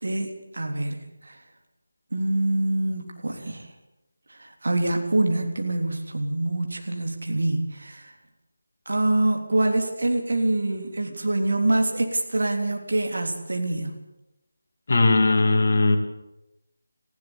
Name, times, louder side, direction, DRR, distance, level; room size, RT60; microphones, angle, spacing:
voice 1, 0.0-1.4 2.1-3.7 4.3-8.1 8.9-13.9, right 2 dB, 55° right, 3 dB, 3.5 m, -25 dB
voice 2, 14.9-16.0, left 2 dB, 45° left, 5 dB, 2.5 m, -19 dB
19.5 x 15.5 x 8.7 m, 0.95 s
figure-of-eight pair, 160°, 0 cm